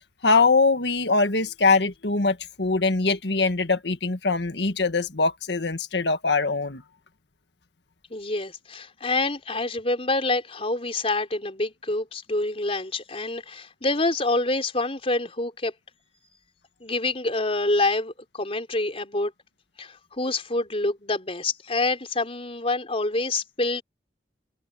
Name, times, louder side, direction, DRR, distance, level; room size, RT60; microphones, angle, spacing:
voice 1, 0.2-6.8, left 3 dB, 75° left, 1.6 m, -22 dB
voice 2, 8.1-15.7 16.8-19.3 19.8-23.8, left 2 dB, 35° left, 4.0 m, -27 dB
open air
head